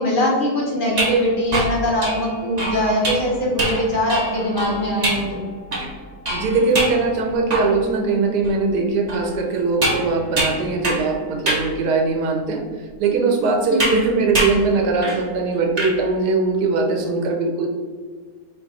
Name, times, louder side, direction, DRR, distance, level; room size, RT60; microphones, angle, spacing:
voice 1, 0.0-5.4 13.7-13.9, equal, 45° left, -2 dB, 0.7 m, -21 dB
sound 1, 0.8-8.0 8.4-8.5 9.1-11.1 11.5-11.7 12.4-12.5 13.8-14.0 14.3-14.6 15.0-15.3 15.5-15.9, right 1 dB, 40° right, 0.6 m, -25 dB
voice 2, 6.3-12.6 13.0-17.7, right 3 dB, 85° right, 2 dB, 1.2 m, -20 dB
3.9 x 2.3 x 3.9 m, 1.5 s
omnidirectional pair, 1.7 m